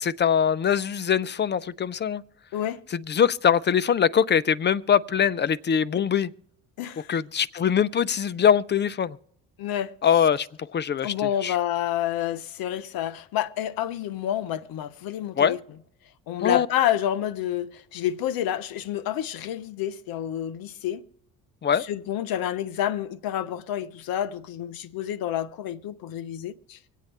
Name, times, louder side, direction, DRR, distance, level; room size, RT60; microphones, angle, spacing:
voice 1, 0.0-2.2 2.9-6.3 7.1-9.2 10.0-10.5 10.7-11.1 11.4-11.6 15.4-15.6 16.4-16.7 21.6-21.8, left 8 dB, 30° left, 0.5 m, -22 dB
voice 2, 6.8-7.1 9.6-9.9 11.0-15.6 16.3-21.0 21.8-26.8, left 11 dB, 65° left, 0.8 m, -29 dB
25.0 x 8.3 x 3.3 m
hypercardioid pair, 65°, 39 cm